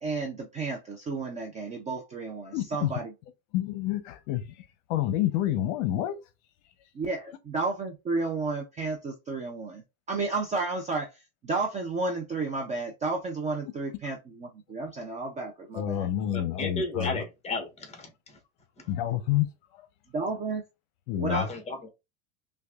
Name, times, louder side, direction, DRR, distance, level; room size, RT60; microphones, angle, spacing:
voice 1, 0.0-3.1 6.9-9.8 10.1-16.1 20.1-20.6 21.2-21.5, right 3 dB, 20° right, 0.4 m, -32 dB
voice 2, 2.5-2.9 3.5-4.6 4.9-6.2 15.7-17.2 18.9-19.9 21.1-21.5, left 12 dB, 65° left, 0.7 m, -28 dB
voice 3, 16.3-18.1 18.8-18.9 21.3-21.9, left 3 dB, 15° left, 1.1 m, -33 dB
5.6 x 2.2 x 2.3 m
supercardioid pair, 145°, 41 cm